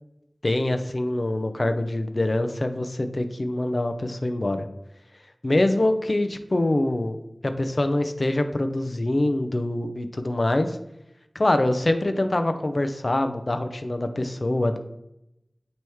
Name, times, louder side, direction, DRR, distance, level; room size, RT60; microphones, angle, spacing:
voice 1, 0.4-4.7 5.4-7.2 7.4-10.8 11.3-14.8, left 1 dB, 50° left, 7 dB, 0.6 m, -24 dB
9.1 x 3.1 x 3.5 m, 0.84 s
wide cardioid pair, 55°, 0 cm